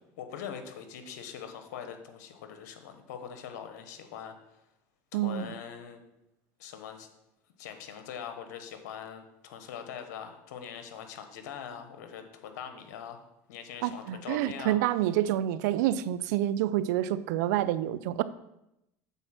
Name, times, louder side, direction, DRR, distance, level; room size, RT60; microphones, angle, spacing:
voice 1, 0.2-4.6 5.1-6.0 6.6-7.1 7.6-14.8, left 8 dB, 80° left, 7 dB, 1.1 m, -42 dB
voice 2, 5.1-5.5 13.8-18.2, right 13 dB, 80° right, 15 dB, 0.4 m, -28 dB
8.2 x 4.2 x 5.8 m, 0.86 s
supercardioid pair, 100°, 9 cm